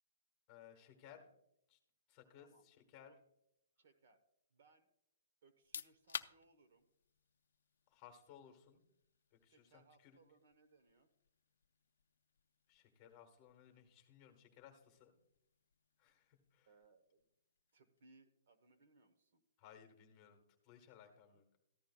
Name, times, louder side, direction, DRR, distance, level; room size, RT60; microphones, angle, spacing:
voice 1, 0.5-1.3 1.7-1.8 2.1-3.1 7.9-8.8 9.4-9.7 10.0-10.1 12.7-15.1 16.0-16.7 19.6-21.5, left 9 dB, 20° left, 4 dB, 1.3 m, -61 dB
voice 2, 3.8-4.2 4.5-4.9 5.4-6.9 9.5-11.1 16.6-17.3 17.7-19.4 21.3-21.4, right 3 dB, 45° right, 9 dB, 1.0 m, -69 dB
sound 1, 5.5-18.1, left 7 dB, 75° left, 0.5 m, -56 dB
14.0 x 11.5 x 2.3 m, 0.79 s
hypercardioid pair, 175°, 0 cm